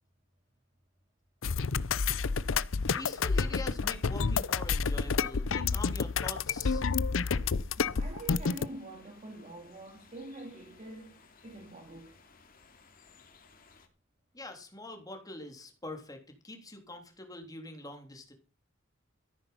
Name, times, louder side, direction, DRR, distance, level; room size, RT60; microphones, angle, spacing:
sound 1, 1.4-8.7, left 5 dB, 75° left, 0.6 m, -29 dB
voice 1, 3.0-6.8 14.3-16.2 16.4-18.3, left 2 dB, 20° left, 3.3 m, -44 dB
voice 2, 7.8-12.2, right 2 dB, 35° right, 2.6 m, -46 dB
sound 2, 8.3-13.9, left 5 dB, 45° left, 2.8 m, -59 dB
14.0 x 10.0 x 5.6 m
head